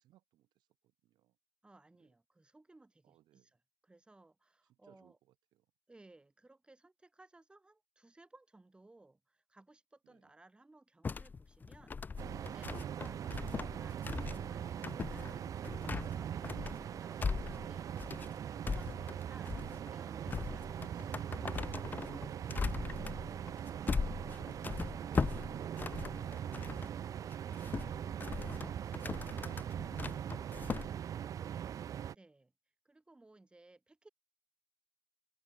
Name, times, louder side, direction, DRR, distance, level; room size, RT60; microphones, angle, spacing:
voice 1, 0.0-1.4 2.0-2.1 3.0-3.5 4.7-5.7 10.0-10.3, right 14 dB, 80° right, 2.1 m, -67 dB
voice 2, 1.6-5.2 5.9-12.7 13.0-13.2 13.8-15.7 16.1-21.5 32.1-32.5 32.8-34.1, right 2 dB, 15° right, 2.1 m, -61 dB
sound 1, 11.0-26.9 27.3-30.9, left 5 dB, 25° left, 0.5 m, -40 dB
sound 2, 12.2-32.2, right 9 dB, 50° right, 0.5 m, -41 dB
open air
cardioid pair, 115°, 7 cm